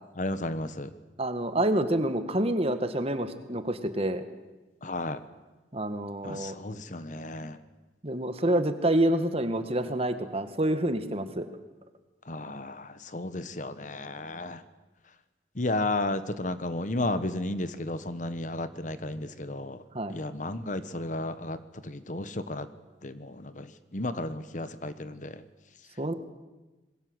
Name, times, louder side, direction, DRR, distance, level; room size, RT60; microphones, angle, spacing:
voice 1, 0.2-0.9 4.8-5.2 6.2-7.6 12.3-14.6 15.6-19.8 20.1-21.6 21.8-22.7 23.0-25.4, left 2 dB, 45° left, 12 dB, 1.2 m, -33 dB
voice 2, 1.2-4.2 5.7-6.5 8.0-11.5 19.9-20.2 26.0-26.1, right 1 dB, 35° right, 9 dB, 1.8 m, -27 dB
27.0 x 21.0 x 8.0 m, 1.2 s
head